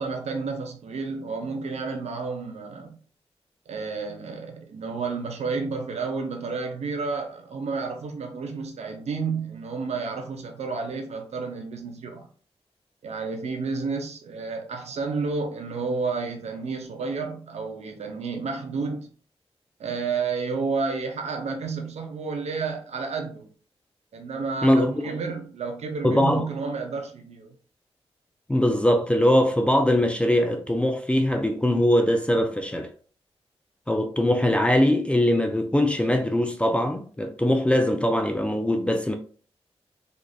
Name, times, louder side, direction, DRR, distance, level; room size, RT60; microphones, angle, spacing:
voice 1, 0.0-3.0 3.7-12.3 13.0-19.1 19.8-23.5 24.1-27.5, right 4 dB, 75° right, 0.6 m, -31 dB
voice 2, 24.6-24.9 26.0-26.5 28.5-32.9 33.9-39.1, left 1 dB, 10° left, 0.4 m, -21 dB
3.6 x 2.4 x 2.3 m
cardioid pair, 80°, 11 cm